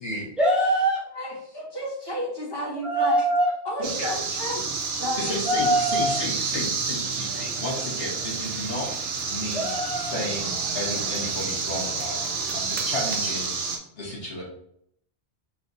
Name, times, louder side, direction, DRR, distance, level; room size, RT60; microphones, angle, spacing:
voice 1, 0.4-1.0 2.8-3.5 5.5-6.1 9.5-10.1, right 1 dB, ahead, -4 dB, 1.0 m, -22 dB
voice 2, 1.1-3.2 3.6-5.3, equal, 20° left, -5 dB, 1.3 m, -32 dB
sound 1, 3.8-13.8, right 4 dB, 85° right, 1.0 m, -29 dB
voice 3, 5.2-8.9 9.3-12.2 12.5-13.5 14.0-14.4, left 1 dB, 60° left, -4 dB, 1.4 m, -33 dB
3.3 x 2.9 x 4.1 m, 0.68 s
omnidirectional pair, 1.2 m